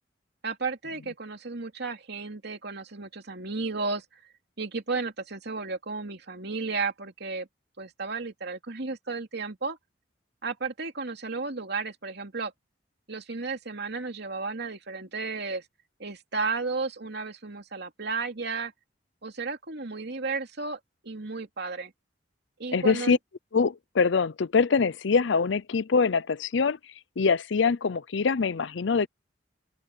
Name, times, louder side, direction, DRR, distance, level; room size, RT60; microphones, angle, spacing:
voice 1, 0.4-4.0 4.6-7.5 7.8-9.8 10.4-12.5 13.1-15.6 16.0-18.7 19.2-21.9 22.6-23.2, right 4 dB, 65° right, 2.7 m, -33 dB
voice 2, 22.7-23.2 23.5-26.8 27.2-29.1, left 5 dB, 75° left, 0.6 m, -24 dB
head